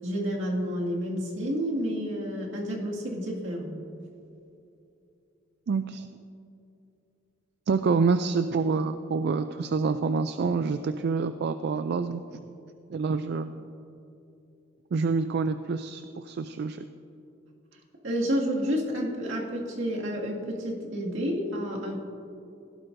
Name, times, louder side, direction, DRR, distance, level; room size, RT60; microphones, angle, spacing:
voice 1, 0.0-3.8 18.0-22.0, equal, 75° right, -2 dB, 2.1 m, -30 dB
voice 2, 5.7-6.1 7.7-12.2 12.9-13.7 14.9-16.8, right 4 dB, 60° right, 10 dB, 0.3 m, -27 dB
16.5 x 11.5 x 2.6 m, 2.7 s
head